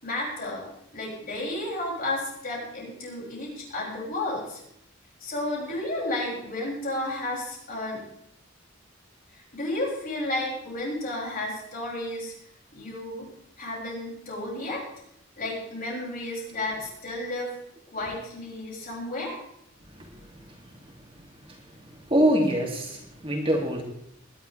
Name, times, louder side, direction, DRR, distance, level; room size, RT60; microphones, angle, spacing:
voice 1, 0.0-0.6 0.9-4.6 5.2-8.0 9.3-12.3 12.7-13.3 13.6-14.8 15.4-17.5 17.9-19.4, left 1 dB, 45° left, -3 dB, 6.4 m, -32 dB
voice 2, 22.1-23.8, equal, 30° right, 0 dB, 2.3 m, -24 dB
21.5 x 11.5 x 3.3 m, 0.77 s
head